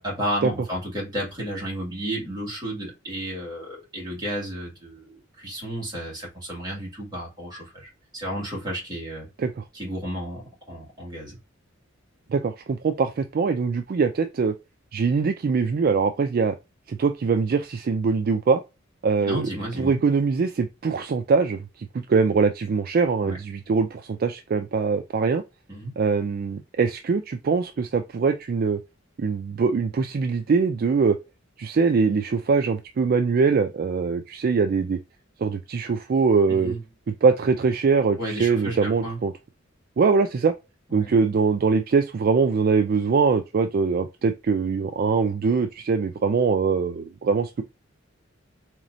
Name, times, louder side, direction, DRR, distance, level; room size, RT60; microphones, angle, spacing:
voice 1, 0.0-9.3 9.7-11.4 19.2-20.0 23.2-23.4 25.7-26.0 36.5-36.8 38.2-39.2 40.9-41.1, right 1 dB, 20° right, 2.1 m, -32 dB
voice 2, 12.3-14.5 14.9-16.5 16.9-18.6 19.0-19.5 19.8-25.4 26.0-28.8 29.2-31.2 31.6-35.0 35.4-36.7 37.2-39.3 40.0-40.5 40.9-47.6, right 5 dB, 50° right, 0.3 m, -22 dB
4.0 x 3.1 x 2.6 m
head